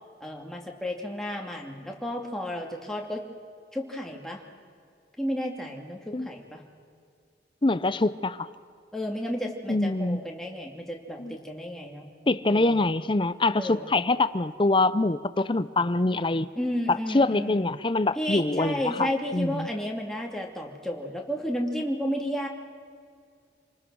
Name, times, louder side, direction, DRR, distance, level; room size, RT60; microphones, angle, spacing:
voice 1, 0.2-3.2 3.7-4.4 5.2-6.6 8.9-12.1 12.5-12.8 13.5-13.9 16.6-17.7 18.1-22.5, equal, 5° left, 0 dB, 2.4 m, -32 dB
voice 2, 7.6-8.5 9.7-10.2 11.2-11.4 12.3-16.5 16.9-19.7, left 2 dB, 30° left, 14 dB, 0.6 m, -24 dB
28.0 x 20.0 x 6.3 m, 2.2 s
head